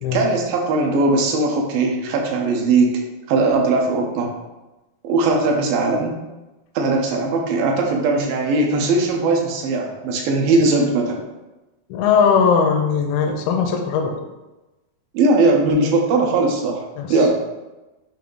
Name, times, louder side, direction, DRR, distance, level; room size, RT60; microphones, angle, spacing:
voice 1, 0.1-2.9 3.3-4.3 5.0-6.1 6.8-11.2 15.1-17.4, right 3 dB, 75° right, 1 dB, 2.5 m, -19 dB
voice 2, 11.9-14.2 17.0-17.2, left 6 dB, 80° left, 2 dB, 2.5 m, -19 dB
7.5 x 2.7 x 5.4 m, 1.1 s
omnidirectional pair, 4.3 m